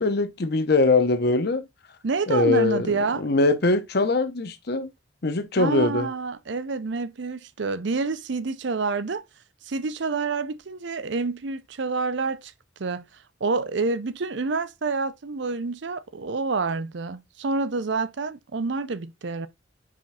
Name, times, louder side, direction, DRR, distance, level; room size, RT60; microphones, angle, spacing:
voice 1, 0.0-1.6 2.3-4.9 5.2-6.1, left 3 dB, 55° left, 0.8 m, -22 dB
voice 2, 2.0-3.2 5.6-9.2 9.6-12.5 12.8-13.1 13.4-19.5, right 4 dB, 65° right, 0.6 m, -28 dB
5.0 x 3.5 x 5.6 m
head